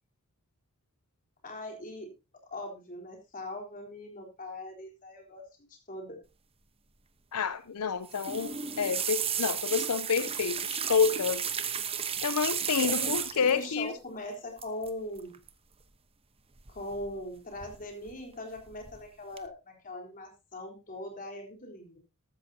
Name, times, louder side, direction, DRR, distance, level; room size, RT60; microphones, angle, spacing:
voice 1, 1.4-2.1 2.5-6.2 12.8-15.4 16.7-22.0, left 1 dB, 40° left, 2 dB, 3.8 m, -41 dB
voice 2, 7.3-8.5 8.8-11.4 12.2-13.9, left 6 dB, 85° left, 13 dB, 0.7 m, -28 dB
sound 1, 8.0-13.6 14.6-14.9 15.2-15.5 16.7-17.2 17.6-18.1 18.6-19.0 19.4-19.5, right 8 dB, 25° right, 1.0 m, -33 dB
14.0 x 13.0 x 2.8 m, 0.27 s
head